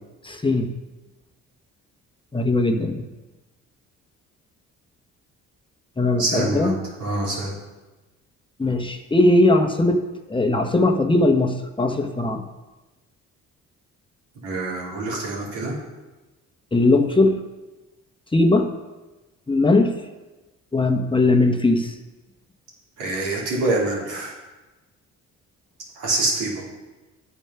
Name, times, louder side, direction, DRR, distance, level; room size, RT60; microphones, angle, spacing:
voice 1, 0.2-0.7 2.3-3.0 6.0-6.8 8.6-10.0 10.3-12.4 16.7-17.4 18.3-18.7 19.5-19.9 20.7-22.0, left 2 dB, 15° left, 4 dB, 1.0 m, -19 dB
voice 2, 6.2-7.5 14.4-15.7 23.0-24.3 25.9-26.6, right 2 dB, 85° right, -4 dB, 3.4 m, -25 dB
9.0 x 7.2 x 5.7 m, 1.1 s
cardioid pair, 90°, 30 cm